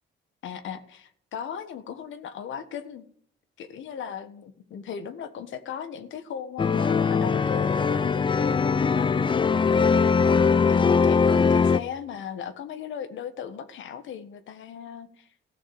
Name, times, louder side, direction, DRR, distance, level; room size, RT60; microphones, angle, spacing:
voice 1, 0.4-3.0 3.6-9.3 9.6-15.3, left 8 dB, 75° left, 10 dB, 1.4 m, -37 dB
sound 1, 6.6-11.8, left 5 dB, 25° left, 0.5 m, -21 dB
15.0 x 6.4 x 7.2 m, 0.62 s
cardioid pair, 90°, 20 cm